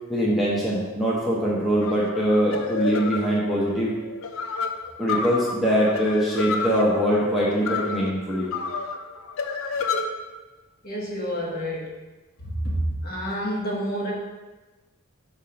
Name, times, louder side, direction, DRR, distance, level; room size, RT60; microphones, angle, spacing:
voice 1, 0.1-4.0 5.0-8.5, equal, ahead, -7 dB, 0.8 m, -23 dB
sound 1, 1.8-10.0, left 5 dB, 65° left, 0.5 m, -30 dB
voice 2, 10.8-11.9 12.4-14.1, equal, 40° left, -4 dB, 1.2 m, -28 dB
5.1 x 3.6 x 5.6 m, 1.2 s
head